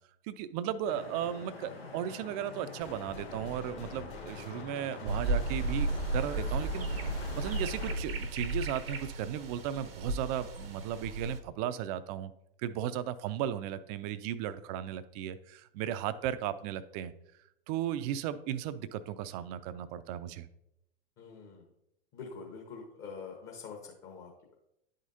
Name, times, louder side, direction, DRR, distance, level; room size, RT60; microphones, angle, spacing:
voice 1, 0.3-6.9 7.4-12.3 12.6-17.1 17.7-20.5, right 10 dB, 40° right, 14 dB, 0.4 m, -36 dB
Vehicle horn car horn honking / Traffic noise roadway noise, 0.8-8.0, left 3 dB, 90° left, 1.0 m, -46 dB
sound 1, 2.8-8.0, left 3 dB, 60° left, 2.1 m, -48 dB
sound 2, 5.0-11.4, right 2 dB, 80° right, 0.8 m, -34 dB
voice 2, 21.2-21.7 22.1-24.5, left 5 dB, 40° left, 0 dB, 1.3 m, -45 dB
10.5 x 5.0 x 2.7 m, 0.81 s
figure-of-eight pair, 90°, 29 cm